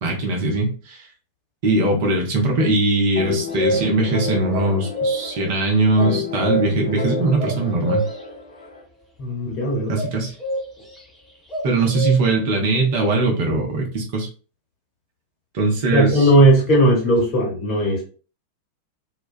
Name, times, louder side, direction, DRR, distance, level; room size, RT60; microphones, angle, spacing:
voice 1, 0.0-1.1 1.6-8.0 9.9-10.3 11.6-14.3 15.5-16.3, right 2 dB, 50° right, 0 dB, 0.7 m, -20 dB
sound 1, 3.1-8.8, left 5 dB, 75° left, 0.6 m, -30 dB
sound 2, 3.5-4.1 4.5-5.5 6.0-6.9 7.4-8.3 9.9-11.0 11.5-12.4, equal, 10° left, 0.9 m, -26 dB
voice 2, 9.2-9.9 15.9-18.0, right 1 dB, 35° left, -1 dB, 1.2 m, -17 dB
2.2 x 2.2 x 2.5 m, 0.37 s
figure-of-eight pair, 90°, 0 cm